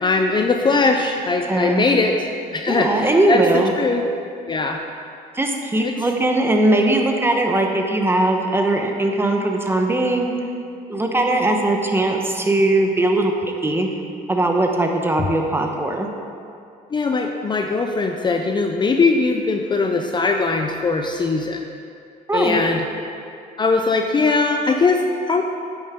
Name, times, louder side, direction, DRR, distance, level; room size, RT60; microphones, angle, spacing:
voice 1, 0.0-2.9 3.3-4.0 4.5-4.8 5.8-5.9 16.9-21.6 22.3-22.8 23.6-25.4, left 3 dB, 25° left, 4 dB, 0.5 m, -20 dB
voice 2, 1.5-1.9 2.7-3.7 5.3-10.3 10.9-13.3 13.6-13.9 14.3-16.1 22.3-22.6, right 2 dB, 15° right, 2 dB, 1.0 m, -19 dB
10.0 x 8.5 x 3.7 m, 2.5 s
cardioid pair, 110°, 17 cm